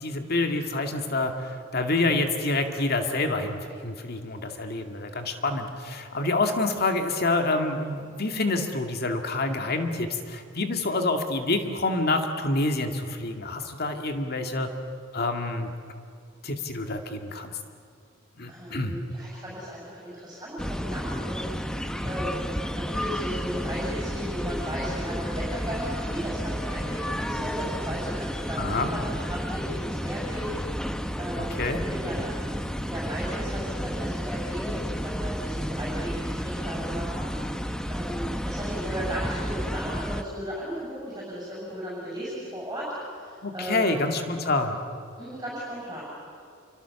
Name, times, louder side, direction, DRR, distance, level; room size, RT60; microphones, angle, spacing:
voice 1, 0.0-14.7 15.1-15.7 16.4-17.5 18.4-19.0 28.6-28.9 31.4-31.8 43.4-44.8, left 2 dB, 50° left, 5 dB, 2.2 m, -27 dB
voice 2, 18.5-21.7 22.0-22.4 22.8-32.3 32.8-44.0 45.2-46.1, equal, 15° right, -7 dB, 7.5 m, -36 dB
sound 1, 20.6-40.2, equal, 5° left, 0.9 m, -31 dB
27.5 x 24.5 x 7.1 m, 2.4 s
head